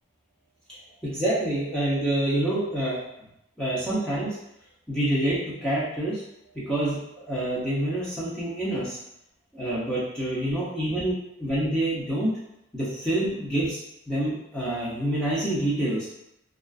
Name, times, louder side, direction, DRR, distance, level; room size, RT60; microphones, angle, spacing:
voice 1, 1.0-3.0 3.6-4.4 4.9-6.2 6.7-9.0 9.5-12.4 12.7-13.8 14.1-16.1, right 1 dB, 5° left, -9 dB, 0.6 m, -27 dB
2.4 x 2.3 x 2.3 m, 0.81 s
head